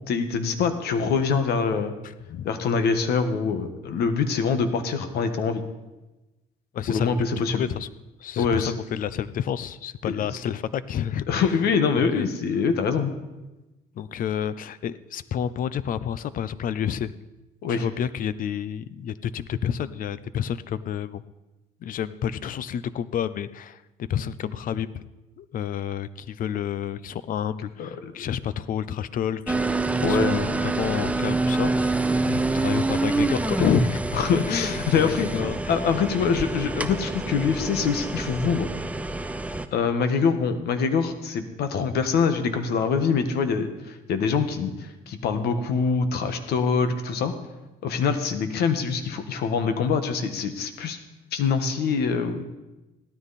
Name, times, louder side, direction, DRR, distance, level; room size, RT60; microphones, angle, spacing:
voice 1, 0.1-1.9 2.4-5.6 6.9-7.7 8.4-8.7 10.1-10.2 11.3-13.1 17.6-17.8 27.8-28.1 30.0-30.5 34.1-35.3 35.7-38.7 39.7-47.3 47.8-51.0 51.3-52.4, left 5 dB, 70° left, 9 dB, 1.5 m, -24 dB
voice 2, 6.7-7.1 7.5-7.9 8.2-11.6 11.9-12.3 14.0-17.1 17.7-21.2 21.8-25.0 25.4-29.6 30.1-34.2 34.5-36.0, left 9 dB, 55° left, 16 dB, 0.6 m, -30 dB
sound 1, 29.5-39.7, right 3 dB, 10° right, 0.7 m, -26 dB
16.0 x 13.0 x 4.2 m, 1.0 s
cardioid pair, 110°, 17 cm